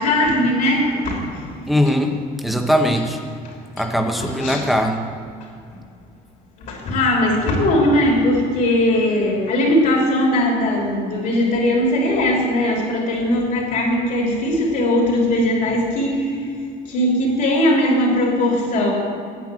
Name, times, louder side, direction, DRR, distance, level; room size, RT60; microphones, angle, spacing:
voice 1, 0.0-1.4 1.8-1.9 3.8-3.9 4.2-4.7 6.6-16.3 16.9-18.9, left 1 dB, 60° left, -2 dB, 3.3 m, -19 dB
voice 2, 1.7-2.1 2.4-3.2 3.8-5.0, equal, ahead, 3 dB, 0.9 m, -20 dB
9.4 x 9.1 x 7.5 m, 2.3 s
cardioid pair, 145°, 15 cm